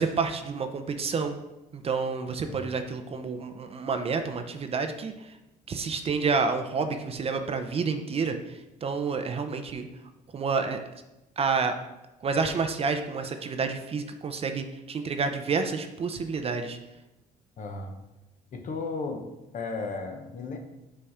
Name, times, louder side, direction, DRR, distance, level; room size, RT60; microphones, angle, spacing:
voice 1, 0.0-1.4 1.7-5.3 5.7-9.9 10.3-10.8 11.4-11.7 12.2-16.8, right 5 dB, 35° right, 7 dB, 0.6 m, -29 dB
voice 2, 17.6-18.0 18.5-19.3 19.5-20.6, left 3 dB, 50° left, 4 dB, 1.0 m, -34 dB
5.6 x 4.1 x 4.8 m, 0.98 s
cardioid pair, 110°, 17 cm